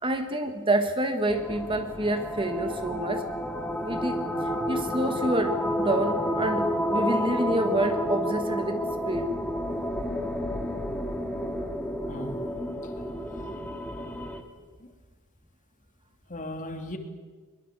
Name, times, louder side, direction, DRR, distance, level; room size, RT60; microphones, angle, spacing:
voice 1, 0.0-3.3 3.8-4.3 4.7-9.4, right 1 dB, 25° right, 7 dB, 1.7 m, -28 dB
sound 1, 1.3-14.4, equal, 5° left, 2.0 m, -30 dB
voice 2, 12.1-12.4 12.8-12.9 14.8-14.9 16.3-17.0, left 1 dB, 35° left, 6 dB, 2.8 m, -37 dB
22.5 x 22.0 x 8.2 m, 1.4 s
head